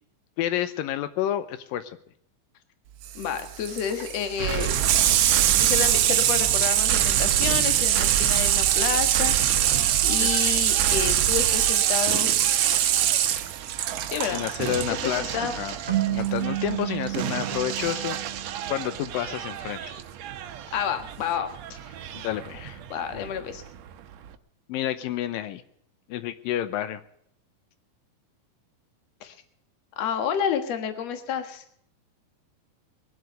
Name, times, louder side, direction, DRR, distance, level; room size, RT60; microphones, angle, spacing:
voice 1, 0.4-2.0 10.2-10.3 14.3-15.8 16.1-18.4 18.7-20.0 22.1-22.8 23.1-23.3 24.7-25.6 26.1-27.0, left 11 dB, 85° left, 11 dB, 2.5 m, -30 dB
Water tap faucet / Sink (filling or washing), 3.0-14.9 16.2-16.3, right 11 dB, 85° right, 1.3 m, -23 dB
voice 2, 3.1-4.7 5.6-9.8 10.0-12.4 14.1-14.5 14.9-15.6 19.8-19.9 20.7-21.8 22.9-23.6 29.2-29.4 30.0-31.6, left 8 dB, 55° left, 8 dB, 2.4 m, -30 dB
sound 1, 4.4-24.4, right 10 dB, 70° right, 1.7 m, -33 dB
sound 2, 15.9-19.0, right 14 dB, 20° right, 2.4 m, -30 dB
22.5 x 8.0 x 6.5 m, 0.71 s
omnidirectional pair, 4.0 m